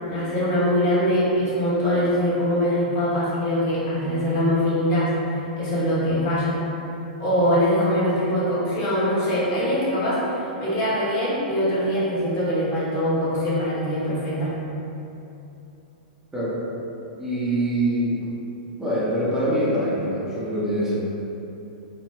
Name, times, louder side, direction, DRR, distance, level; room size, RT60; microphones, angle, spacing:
voice 1, 0.1-5.2 5.6-6.7 7.2-10.2 10.6-14.6, equal, 40° left, -9 dB, 1.3 m, -22 dB
voice 2, 17.2-18.3 18.8-21.0, right 1 dB, 10° right, -8 dB, 0.8 m, -24 dB
3.0 x 2.2 x 3.3 m, 2.8 s
hypercardioid pair, 125°, 5 cm